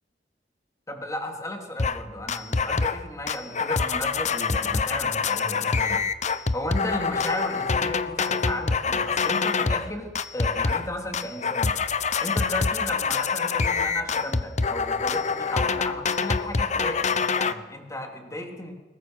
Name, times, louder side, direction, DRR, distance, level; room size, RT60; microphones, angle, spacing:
voice 1, 0.9-6.0 6.5-11.7 12.2-18.7, left 1 dB, 20° left, 3 dB, 3.2 m, -34 dB
sound 1, 1.8-2.0 2.3-3.0 3.3-9.9 10.2-10.9 11.1-17.5, left 5 dB, 40° left, 0.8 m, -25 dB
22.0 x 20.0 x 6.4 m, 1.3 s
head